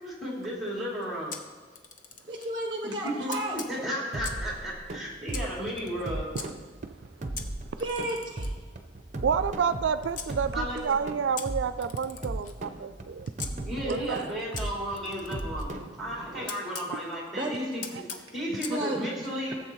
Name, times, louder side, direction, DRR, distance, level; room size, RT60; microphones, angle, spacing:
voice 1, 0.0-1.4 2.8-2.9 3.2-3.3 3.7-6.3 10.5-10.9 12.2-12.3 13.6-17.9 18.3-19.5, equal, ahead, -5 dB, 2.9 m, -34 dB
Camera, 1.3-2.6 3.3-4.5 5.3-6.5 7.4-10.3 11.4-13.5 14.6-16.9 17.8-18.8, left 6 dB, 45° left, 0.8 m, -43 dB
voice 2, 2.3-3.6 7.8-8.2 17.3-17.7 18.5-19.0 19.5-19.6, right 1 dB, 25° right, 1 dB, 1.0 m, -32 dB
sound 1, 4.1-16.5, right 1 dB, 40° right, 0.7 m, -37 dB
voice 3, 9.2-13.3 13.9-14.3, right 6 dB, 85° right, 12 dB, 0.4 m, -29 dB
17.0 x 7.4 x 3.1 m, 1.4 s
head